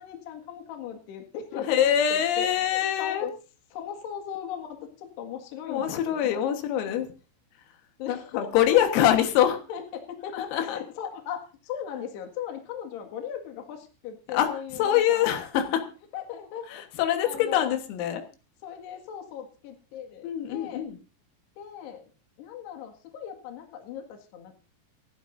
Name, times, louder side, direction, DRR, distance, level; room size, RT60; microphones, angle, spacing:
voice 1, 0.0-1.7 2.1-3.3 3.7-6.4 8.0-8.5 9.4-15.3 16.1-16.8 17.2-17.7 18.6-20.8 21.6-22.0 22.4-24.7, left 8 dB, 60° left, 4 dB, 3.6 m, -38 dB
voice 2, 1.6-3.3 5.7-7.1 8.1-9.6 10.3-10.8 14.3-14.5 14.8-15.9 16.7-18.2 20.2-21.0, left 10 dB, 85° left, 6 dB, 4.2 m, -24 dB
27.5 x 10.5 x 2.6 m, 0.35 s
omnidirectional pair, 6.0 m